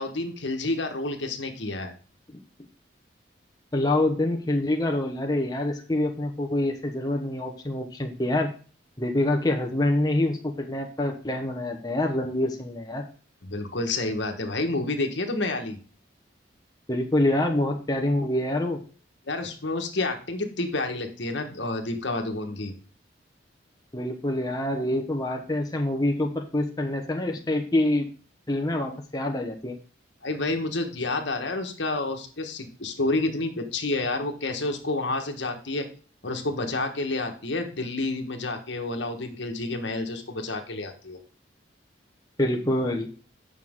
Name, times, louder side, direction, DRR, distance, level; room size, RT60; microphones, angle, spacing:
voice 1, 0.0-1.9 13.4-15.8 19.3-22.7 30.2-35.9 36.2-41.2, left 2 dB, 70° left, 5 dB, 1.4 m, -29 dB
voice 2, 3.7-8.5 9.0-13.0 16.9-18.8 23.9-28.1 28.5-29.8 42.4-43.1, left 1 dB, 20° left, 2 dB, 1.0 m, -26 dB
8.5 x 6.2 x 3.7 m, 0.39 s
head